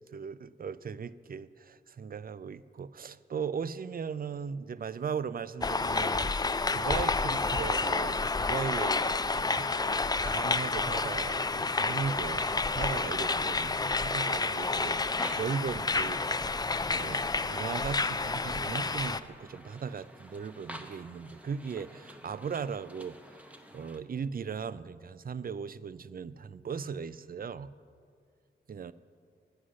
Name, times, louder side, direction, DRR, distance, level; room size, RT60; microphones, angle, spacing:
voice 1, 0.1-6.3 6.7-16.5 16.9-23.4 23.7-27.7 28.7-28.9, right 6 dB, 50° right, 16 dB, 0.4 m, -38 dB
sound 1, 5.6-19.2, left 3 dB, 20° left, 0.3 m, -30 dB
sound 2, 14.7-24.0, equal, 5° right, 0.9 m, -50 dB
10.0 x 9.6 x 6.3 m, 2.2 s
cardioid pair, 60°, 19 cm